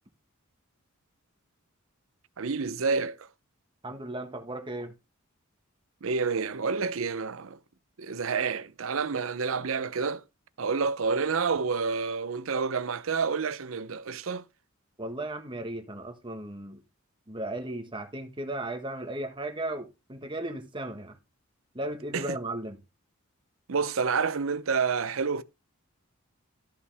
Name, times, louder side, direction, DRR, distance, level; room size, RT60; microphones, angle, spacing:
voice 1, 2.4-3.2 6.0-7.6 8.0-10.2 10.6-14.4 22.1-22.3 23.7-25.4, right 5 dB, 70° right, 0.7 m, -29 dB
voice 2, 3.8-4.9 15.0-16.8 17.3-21.2 21.7-22.8, right 1 dB, 25° right, 1.4 m, -36 dB
13.5 x 5.6 x 3.4 m
head